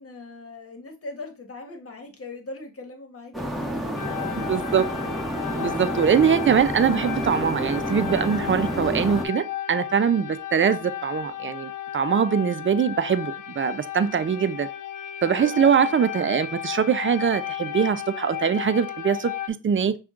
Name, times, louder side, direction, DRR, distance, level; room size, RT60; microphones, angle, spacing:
voice 1, 0.0-4.4 15.3-16.0, left 3 dB, 45° left, 1.4 m, -41 dB
sound 1, 3.3-9.2, equal, ahead, 1.2 m, -29 dB
sound 2, 3.9-19.5, left 11 dB, 80° left, 0.6 m, -34 dB
voice 2, 4.5-4.8 5.6-14.7 15.2-20.0, right 7 dB, 40° right, 0.6 m, -22 dB
5.9 x 2.4 x 3.6 m
supercardioid pair, 60°, 32 cm